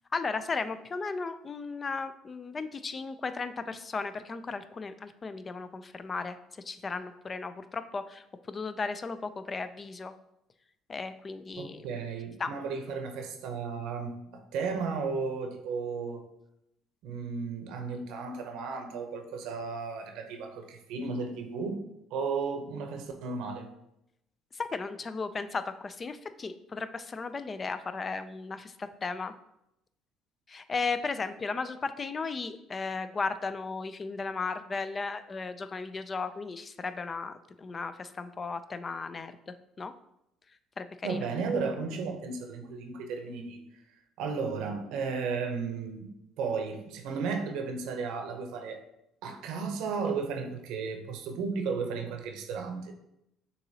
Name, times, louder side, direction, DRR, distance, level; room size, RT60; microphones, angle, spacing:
voice 1, 0.1-10.1 10.9-11.8 12.4-12.5 24.5-29.3 30.5-39.9 40.8-41.3, left 4 dB, 35° left, 11 dB, 0.3 m, -35 dB
voice 2, 11.6-16.2 17.0-21.8 22.1-23.7 41.0-43.6 44.2-46.1 46.4-48.8 49.2-52.9, right 5 dB, 75° right, 5 dB, 0.7 m, -34 dB
6.5 x 2.9 x 2.8 m, 0.81 s
supercardioid pair, 75°, 0 cm